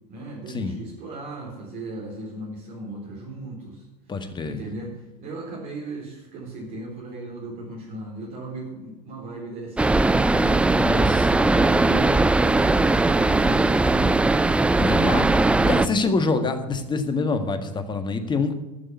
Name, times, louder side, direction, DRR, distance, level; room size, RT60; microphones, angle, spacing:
voice 1, 0.1-3.8 4.4-4.9 5.2-9.8 10.3-14.6 15.6-16.0, right 2 dB, 45° right, -4 dB, 4.1 m, -36 dB
voice 2, 4.1-4.6 10.7-11.3 14.8-18.5, left 4 dB, 20° left, 8 dB, 1.7 m, -26 dB
sound 1, 9.8-15.9, right 2 dB, 5° right, 0.4 m, -19 dB
14.0 x 6.5 x 9.4 m, 0.98 s
hypercardioid pair, 90°, 21 cm